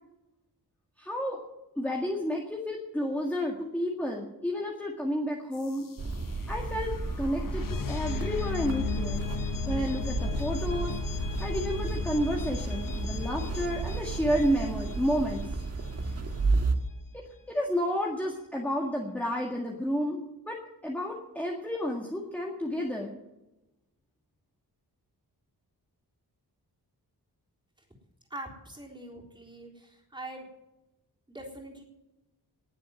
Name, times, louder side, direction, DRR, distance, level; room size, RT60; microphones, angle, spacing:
voice 1, 1.0-1.4 1.8-5.9 6.5-6.9 7.2-9.2 9.7-10.9 11.4-15.5 17.1-17.2 17.5-20.6 20.8-23.2, equal, 5° left, -1 dB, 1.9 m, -31 dB
sound 1, 5.5-16.3, left 10 dB, 55° left, 1.0 m, -37 dB
sound 2, 6.0-16.8, right 3 dB, 40° right, 1.5 m, -32 dB
voice 2, 28.3-30.5 31.3-31.8, right 1 dB, 10° right, -2 dB, 3.7 m, -43 dB
19.5 x 7.7 x 7.6 m, 0.97 s
wide cardioid pair, 175°, 39 cm